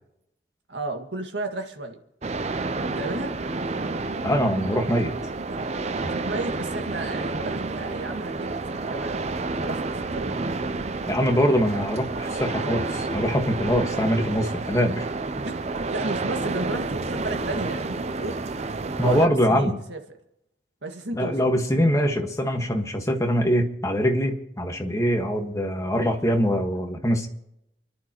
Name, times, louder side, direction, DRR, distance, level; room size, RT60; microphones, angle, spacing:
voice 1, 0.7-2.0 3.0-3.3 6.0-9.2 9.6-10.3 15.4-15.5 15.8-18.4 19.0-20.0 20.8-21.4, right 2 dB, 80° right, 1.9 m, -33 dB
sound 1, 2.2-19.3, right 3 dB, 35° right, 0.6 m, -30 dB
voice 2, 4.2-5.1 6.0-6.1 11.1-15.1 19.0-19.8 21.1-27.3, equal, 15° left, 1.5 m, -23 dB
29.0 x 11.5 x 3.0 m
head